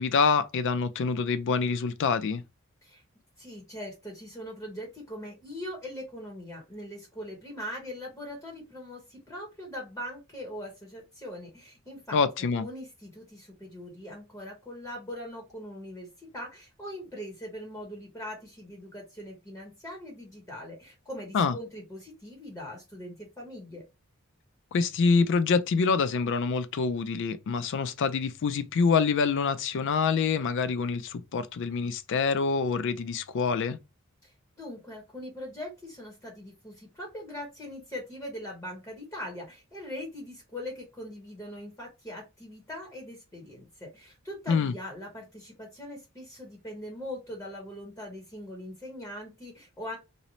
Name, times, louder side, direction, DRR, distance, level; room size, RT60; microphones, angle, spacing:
voice 1, 0.0-2.4 12.1-12.7 21.3-21.6 24.7-33.8 44.5-44.7, left 5 dB, 60° left, 0.4 m, -26 dB
voice 2, 3.4-23.8 34.2-50.0, left 1 dB, 15° left, 0.9 m, -41 dB
2.7 x 2.0 x 2.8 m
head